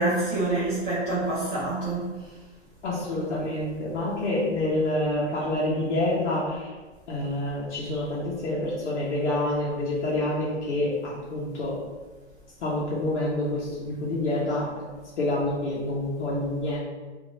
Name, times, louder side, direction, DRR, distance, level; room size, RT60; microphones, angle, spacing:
voice 1, 0.0-2.1, right 2 dB, 5° right, -16 dB, 0.3 m, -26 dB
voice 2, 2.8-6.7 7.1-11.8 12.6-14.9 15.2-16.8, left 1 dB, 80° left, -6 dB, 1.0 m, -27 dB
3.1 x 2.7 x 2.7 m, 1.3 s
hypercardioid pair, 165°, 35 cm